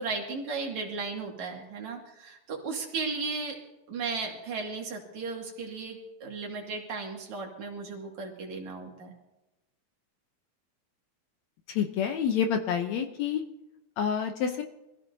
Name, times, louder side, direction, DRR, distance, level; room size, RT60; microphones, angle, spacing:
voice 1, 0.0-3.6 3.9-9.1, right 4 dB, 65° right, 0 dB, 3.4 m, -35 dB
voice 2, 11.7-13.4 14.0-14.6, left 7 dB, 70° left, 5 dB, 1.8 m, -28 dB
25.0 x 15.5 x 2.7 m, 0.97 s
omnidirectional pair, 3.7 m